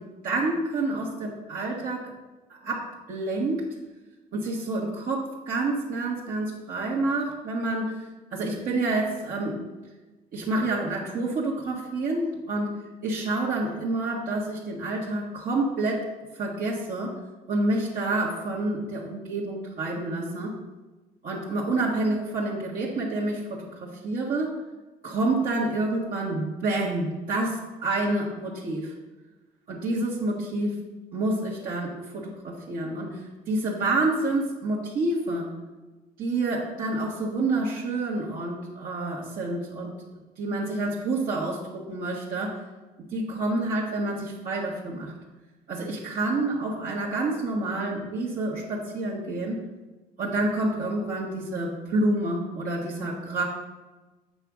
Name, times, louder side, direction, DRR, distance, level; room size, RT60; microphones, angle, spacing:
voice 1, 0.0-2.1 2.5-3.7 4.3-8.0 8.3-9.6 10.3-12.8 13.0-17.1 17.5-20.5 21.2-24.6 25.0-28.9 29.7-30.8 31.1-35.5 36.2-39.9 40.4-42.6 43.1-45.1 45.7-49.6 50.2-53.4, right 2 dB, 60° right, -5 dB, 1.4 m, -28 dB
7.8 x 3.5 x 6.2 m, 1.2 s
cardioid pair, 110°, 17 cm